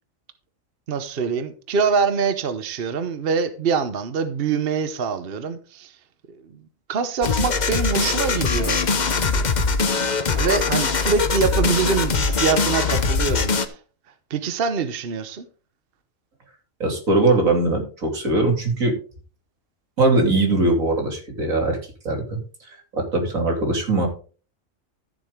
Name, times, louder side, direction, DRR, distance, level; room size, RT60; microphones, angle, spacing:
voice 1, 0.9-5.9 6.3-6.4 6.9-8.8 9.3-9.4 10.3-13.8 14.3-15.4, right 5 dB, 50° right, 1.0 m, -24 dB
sound 1, 7.2-13.7, left 4 dB, 40° left, 0.9 m, -22 dB
voice 2, 16.8-18.9 20.0-21.8 22.0-22.4 22.9-24.1, right 2 dB, 85° right, 3.2 m, -20 dB
13.5 x 7.5 x 3.7 m
omnidirectional pair, 1.4 m